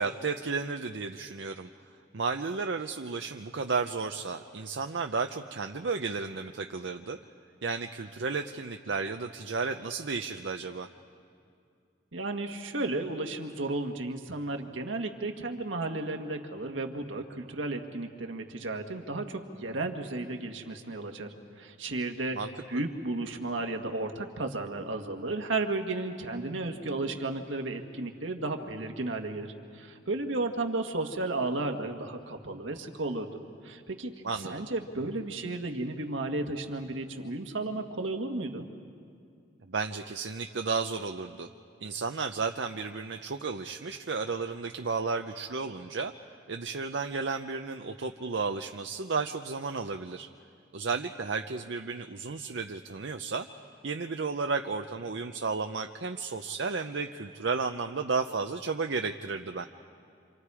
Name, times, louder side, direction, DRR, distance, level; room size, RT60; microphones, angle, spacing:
voice 1, 0.0-1.7 2.1-7.2 7.6-10.9 22.3-22.5 34.2-34.6 39.7-41.5 41.8-46.1 46.5-50.3 50.7-53.5 53.8-59.6, right 4 dB, 70° right, 5 dB, 0.7 m, -33 dB
voice 2, 12.1-21.3 21.6-22.4 22.7-29.5 29.7-33.3 33.6-34.1 34.4-38.6, right 2 dB, 90° right, 4 dB, 1.6 m, -33 dB
27.5 x 27.5 x 4.9 m, 2.4 s
head